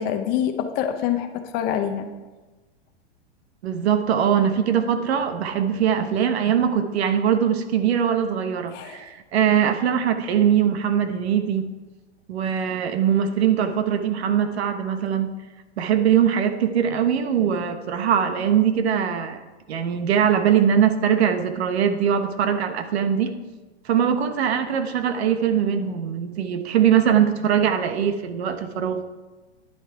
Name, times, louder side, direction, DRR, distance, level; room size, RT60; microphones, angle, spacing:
voice 1, 0.0-2.1 8.7-9.0, left 9 dB, 30° left, 7 dB, 0.7 m, -26 dB
voice 2, 3.6-11.7 12.3-15.3 15.8-19.4 19.7-23.3 23.8-29.0, right 8 dB, 70° right, 9 dB, 1.1 m, -21 dB
10.0 x 8.2 x 4.6 m, 1.2 s
hypercardioid pair, 145°, 34 cm